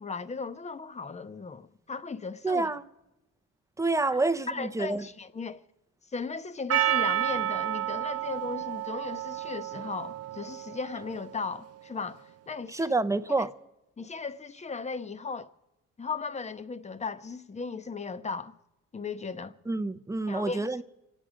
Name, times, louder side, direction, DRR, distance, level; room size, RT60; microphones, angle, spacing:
voice 1, 0.0-2.7 4.1-4.2 4.5-5.6 6.1-12.9 13.4-13.5 14.0-15.5 16.0-18.5 18.9-19.6 20.3-20.8, left 4 dB, 20° left, 0.8 m, -36 dB
voice 2, 2.4-2.8 3.8-5.0 12.7-13.5 19.7-20.8, right 3 dB, 10° right, 0.7 m, -28 dB
Percussion, 6.7-11.2, right 13 dB, 55° right, 0.6 m, -30 dB
26.0 x 9.1 x 5.0 m
cardioid pair, 90°, 30 cm